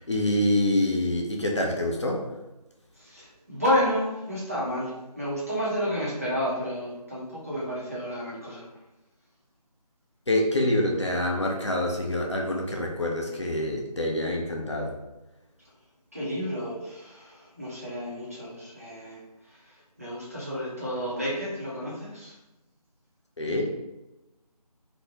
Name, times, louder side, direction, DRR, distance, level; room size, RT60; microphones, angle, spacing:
voice 1, 0.0-2.3 10.3-15.0 23.4-23.7, left 1 dB, 45° left, 0 dB, 0.4 m, -26 dB
voice 2, 3.0-8.7 16.1-22.4, equal, 20° right, -8 dB, 0.5 m, -31 dB
2.5 x 2.1 x 3.0 m, 0.97 s
figure-of-eight pair, 165°, 20 cm